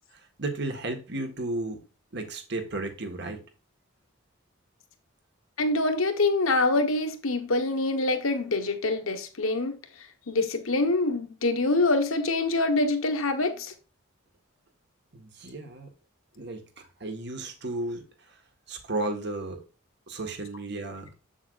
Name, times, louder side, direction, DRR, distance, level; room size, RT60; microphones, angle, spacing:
voice 1, 0.4-1.8 2.1-3.4 15.1-15.9 16.4-18.0 18.7-19.6 20.1-21.1, right 2 dB, 55° right, 1.7 m, -33 dB
voice 2, 5.6-9.8 10.3-13.7, left 2 dB, 85° left, 1.5 m, -25 dB
7.8 x 7.2 x 2.6 m
head